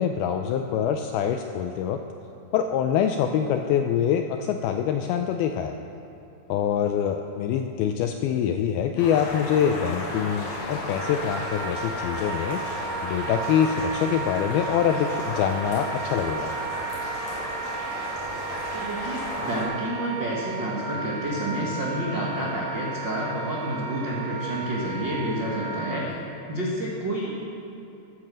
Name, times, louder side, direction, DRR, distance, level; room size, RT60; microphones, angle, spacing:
voice 1, 0.0-2.0 2.5-5.8 6.5-16.5, left 8 dB, 85° left, 6 dB, 2.2 m, -25 dB
sound 1, 9.0-19.6, left 2 dB, 45° left, 4.7 m, -34 dB
Wind instrument woodwind instrument, 10.9-26.0, right 5 dB, 85° right, 4.6 m, -35 dB
voice 2, 18.7-26.1 26.5-27.3, right 1 dB, 65° right, -5 dB, 1.1 m, -29 dB
12.5 x 10.0 x 7.6 m, 2.8 s
omnidirectional pair, 4.9 m